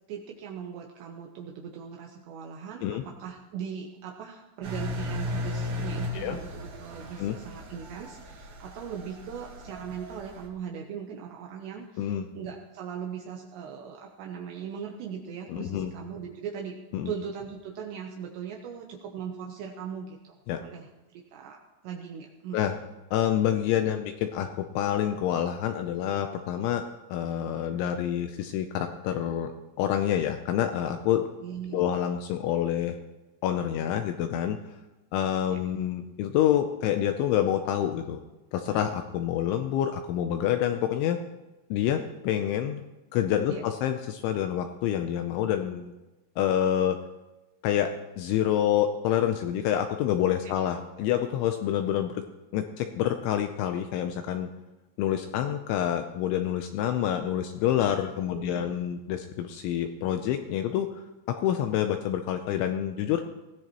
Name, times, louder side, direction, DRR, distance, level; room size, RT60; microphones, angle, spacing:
voice 1, 0.1-16.8 17.1-21.6 21.8-22.8 31.4-32.0 35.5-35.6 43.5-43.6 50.4-50.5 58.3-58.8, right 7 dB, 80° right, 1 dB, 2.6 m, -39 dB
Engine, 4.6-10.5, left 1 dB, 55° right, 3.2 m, -36 dB
voice 2, 15.5-15.9 16.9-17.1 20.5-20.6 22.5-22.7 23.1-26.8 27.1-29.5 29.8-31.2 31.7-33.0 33.4-34.6 35.1-38.2 38.5-41.2 41.7-42.8 43.1-45.9 46.4-47.0 47.6-52.2 52.5-54.5 55.0-63.2, left 10 dB, 80° left, 6 dB, 2.7 m, -27 dB
20.5 x 15.5 x 3.0 m, 1.1 s
omnidirectional pair, 6.0 m